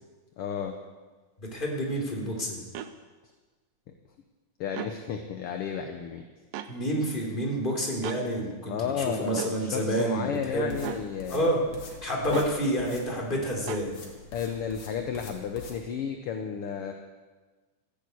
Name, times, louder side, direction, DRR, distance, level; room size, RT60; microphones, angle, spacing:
voice 1, 0.4-0.8 4.6-6.2 8.7-11.5 12.3-12.4 13.3-13.5 14.3-16.9, left 7 dB, 65° left, 5 dB, 1.5 m, -32 dB
voice 2, 1.4-2.7 6.7-10.7 11.3-11.6 12.0-14.0, right 1 dB, 15° left, -2 dB, 3.1 m, -29 dB
sound 1, 2.7-2.9 4.7-5.0 6.5-6.7 8.0-8.2 9.4-9.6 10.8-11.1 12.3-12.6 13.7-13.9, right 11 dB, 70° right, 1.6 m, -36 dB
sound 2, 10.5-15.8, left 4 dB, 90° left, 3.8 m, -46 dB
14.5 x 9.4 x 8.5 m, 1.3 s
omnidirectional pair, 3.4 m